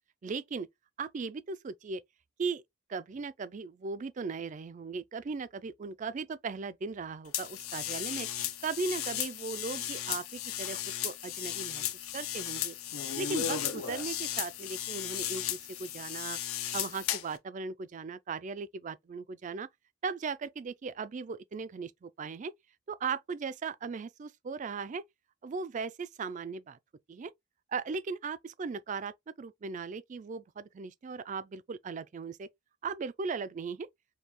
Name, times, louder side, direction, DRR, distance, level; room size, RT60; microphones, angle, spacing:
voice 1, 0.2-0.7 1.0-2.0 2.4-2.6 2.9-8.3 8.6-11.8 12.1-12.8 13.2-16.4 16.7-19.7 20.0-22.5 22.9-25.0 25.4-26.8 27.1-27.3 27.7-32.5 32.8-33.9, right 4 dB, 35° right, 0.3 m, -37 dB
sound 1, 7.3-17.4, left 10 dB, 75° left, 0.6 m, -35 dB
5.2 x 2.3 x 2.9 m
head